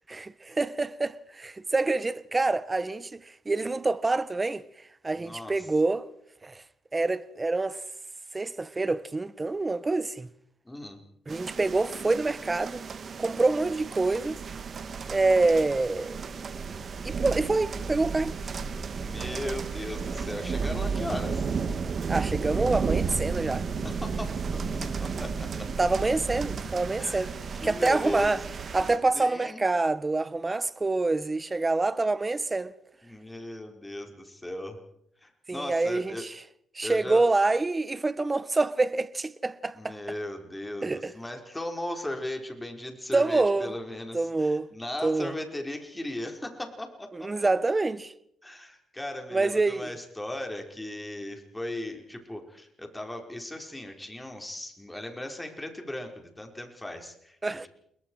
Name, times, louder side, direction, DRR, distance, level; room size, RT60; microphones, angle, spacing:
voice 1, 0.1-4.6 5.0-6.0 6.4-6.6 6.9-7.8 8.3-10.3 11.3-12.8 13.2-14.4 15.1-16.2 17.0-18.4 22.1-23.6 25.8-27.3 27.6-28.4 28.7-32.7 35.5-36.3 36.7-39.9 40.8-41.1 43.1-43.7 44.1-44.7 45.0-45.3 47.1-48.1 49.3-49.8 57.4-57.7, right 3 dB, 20° right, 1.2 m, -26 dB
voice 2, 5.1-5.7 10.6-11.0 18.9-21.6 23.8-25.7 27.0-28.4 29.1-29.6 33.0-34.8 35.2-36.2 36.8-37.3 39.7-47.3 48.4-57.4, left 1 dB, 10° left, 4.8 m, -37 dB
sound 1, 11.3-29.0, right 5 dB, 45° right, 2.4 m, -33 dB
29.0 x 22.0 x 4.8 m
cardioid pair, 90°, 0 cm